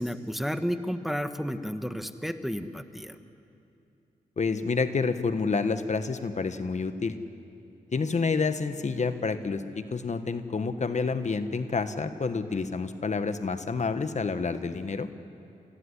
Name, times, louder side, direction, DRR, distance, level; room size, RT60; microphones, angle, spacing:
voice 1, 0.0-3.2, equal, ahead, 9 dB, 1.4 m, -32 dB
voice 2, 4.4-7.1 7.9-15.1, left 4 dB, 50° left, 10 dB, 1.4 m, -29 dB
26.5 x 15.5 x 10.0 m, 2.7 s
cardioid pair, 45°, 15 cm